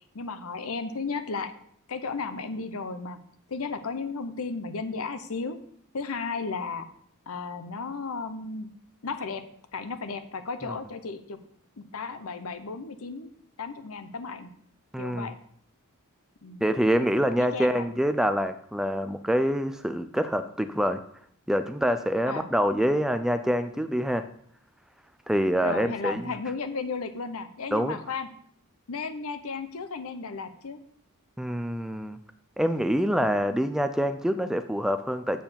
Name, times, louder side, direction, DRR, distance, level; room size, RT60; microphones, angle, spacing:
voice 1, 0.1-1.5 1.9-3.2 3.5-5.6 5.9-6.9 7.3-8.7 9.0-9.4 9.7-11.4 11.8-13.3 13.6-14.5 15.0-15.3 16.4-16.6 17.4-17.9 22.3-22.5 25.6-28.3 28.9-30.8, left 4 dB, 75° left, 10 dB, 0.8 m, -34 dB
voice 2, 14.9-15.3 16.6-21.0 21.5-24.2 25.3-26.3 27.7-28.0 31.4-32.2 32.6-35.4, equal, ahead, 10 dB, 0.3 m, -26 dB
7.6 x 4.6 x 6.9 m, 0.65 s
head